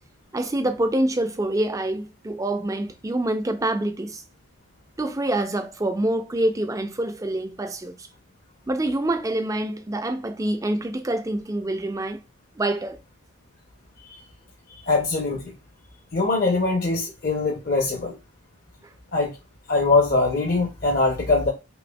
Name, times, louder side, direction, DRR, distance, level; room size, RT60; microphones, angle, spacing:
voice 1, 0.3-4.2 5.0-8.1 8.7-12.2 12.6-13.0, right 1 dB, 15° right, 0.3 m, -26 dB
voice 2, 14.8-15.5 16.1-18.2 19.1-19.4 19.7-21.5, left 3 dB, 40° left, 0.6 m, -22 dB
5.2 x 2.4 x 2.2 m
head